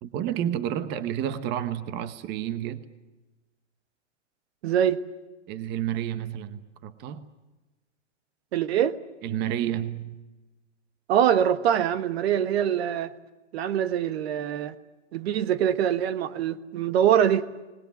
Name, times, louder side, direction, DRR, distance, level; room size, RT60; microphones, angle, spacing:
voice 1, 0.0-2.8 5.5-7.3 9.2-10.2, right 10 dB, 30° right, 1.1 m, -30 dB
voice 2, 4.6-5.0 8.5-9.0 11.1-13.1 13.5-14.7 15.1-17.5, right 9 dB, 55° right, 1.4 m, -24 dB
26.5 x 20.0 x 9.2 m
hypercardioid pair, 145°, 36 cm